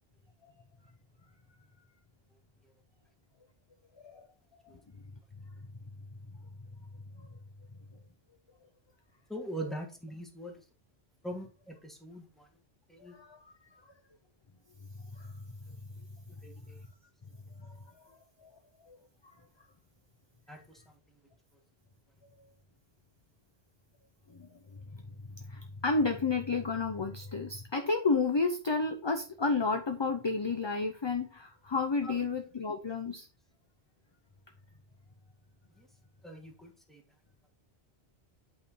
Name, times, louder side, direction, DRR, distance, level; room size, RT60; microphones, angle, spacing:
voice 1, 9.3-10.6 11.2-12.5 12.9-13.2 16.4-16.8 20.5-21.0 32.0-32.1 35.8-35.9 36.2-37.0, right 1 dB, ahead, 1 dB, 1.5 m, -42 dB
voice 2, 13.0-13.5 15.0-15.3 17.6-19.0 19.2-19.3 24.3-33.3, left 4 dB, 30° left, 5 dB, 0.6 m, -32 dB
8.8 x 3.7 x 4.4 m, 0.34 s
omnidirectional pair, 1.1 m